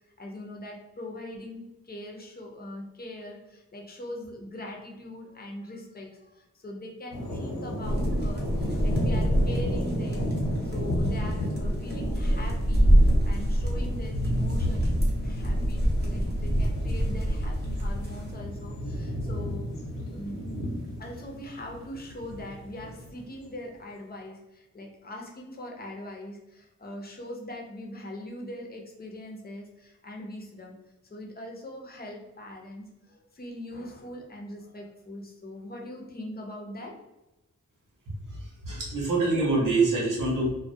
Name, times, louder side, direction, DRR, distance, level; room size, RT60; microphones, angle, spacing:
voice 1, 0.2-19.7 20.1-20.4 21.0-30.8 31.0-37.0, left 1 dB, 30° left, 0 dB, 0.5 m, -41 dB
sound 1, 7.1-23.2, left 1 dB, 80° left, 0.7 m, -33 dB
sound 2, 7.8-18.3, equal, 30° right, 0.6 m, -26 dB
voice 2, 38.1-40.5, right 3 dB, 75° right, -4 dB, 0.8 m, -26 dB
2.2 x 2.1 x 2.6 m, 1.0 s
wide cardioid pair, 95°, 33 cm